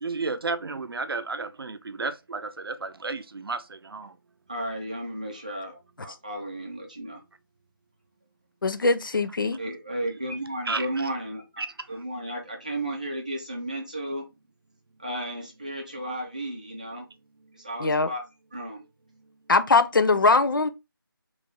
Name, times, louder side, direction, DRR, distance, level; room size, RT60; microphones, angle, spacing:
voice 1, 0.0-4.1 10.7-10.9 11.6-11.7, right 3 dB, 85° right, 0.5 m, -32 dB
voice 2, 4.5-5.7 6.0-7.2 9.6-11.6 11.9-14.3 15.0-17.0 17.6-18.2 18.5-18.8, right 1 dB, 20° right, 0.5 m, -33 dB
voice 3, 8.6-9.6 17.8-18.1 19.5-20.7, left 3 dB, 65° left, 0.4 m, -21 dB
3.0 x 2.1 x 3.8 m
figure-of-eight pair, 175°, 12 cm